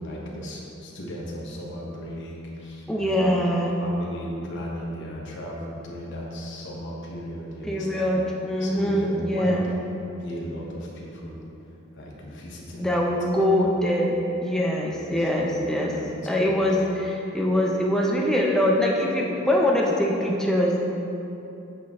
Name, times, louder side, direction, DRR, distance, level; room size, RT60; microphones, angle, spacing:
voice 1, 0.0-3.3 3.8-8.1 8.6-9.8 10.1-11.4 11.9-13.7 14.9-16.9, equal, 60° left, -2 dB, 1.0 m, -36 dB
voice 2, 2.9-3.7 7.7-9.6 12.8-15.9 16.2-20.8, left 1 dB, 5° left, -2 dB, 0.6 m, -23 dB
7.7 x 4.4 x 3.5 m, 2.8 s
head